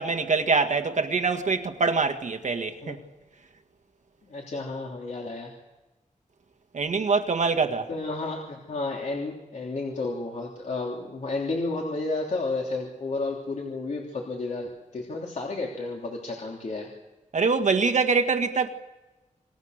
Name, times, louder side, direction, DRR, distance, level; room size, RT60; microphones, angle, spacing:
voice 1, 0.0-3.0 6.7-7.9 17.3-18.7, right 4 dB, 65° right, 1.8 m, -24 dB
voice 2, 4.3-5.5 7.9-16.9, left 3 dB, 65° left, 3.3 m, -32 dB
27.5 x 23.5 x 6.6 m
wide cardioid pair, 120°, 13 cm